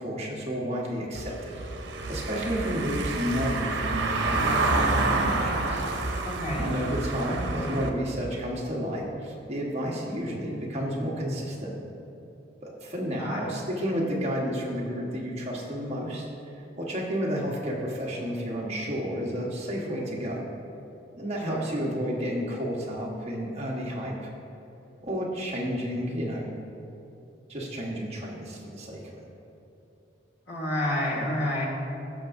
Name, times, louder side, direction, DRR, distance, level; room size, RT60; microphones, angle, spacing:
voice 1, 0.0-1.5 2.1-5.8 6.6-11.7 12.6-20.4 21.2-24.3 25.0-26.5 27.5-29.2, equal, 35° right, -3 dB, 1.3 m, -31 dB
Car passing by / Engine, 1.2-7.9, right 2 dB, 85° right, 0.8 m, -28 dB
voice 2, 6.2-6.7 13.2-13.4 21.5-21.6 30.5-31.7, left 1 dB, 75° left, -3 dB, 2.0 m, -29 dB
16.0 x 6.0 x 2.6 m, 2.9 s
head